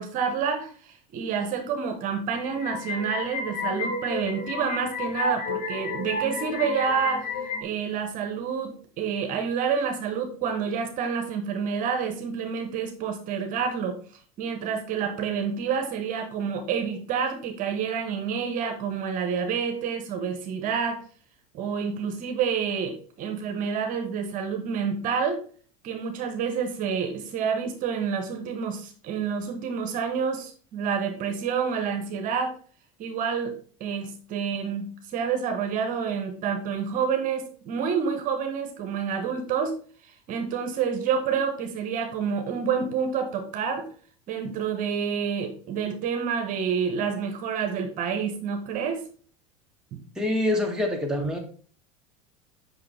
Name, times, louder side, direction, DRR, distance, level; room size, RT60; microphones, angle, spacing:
voice 1, 0.0-14.0 14.4-21.0 21.5-25.4 25.8-32.5 33.0-33.5 33.8-39.8 40.3-43.9 44.3-49.0 49.9-50.0, right 6 dB, 50° right, 5 dB, 1.1 m, -28 dB
sound 1, 2.3-7.6, left 3 dB, 50° left, 1.5 m, -31 dB
voice 2, 50.1-51.4, left 1 dB, 5° right, 0 dB, 1.6 m, -25 dB
5.7 x 5.6 x 3.4 m, 0.43 s
hypercardioid pair, 85°, 18 cm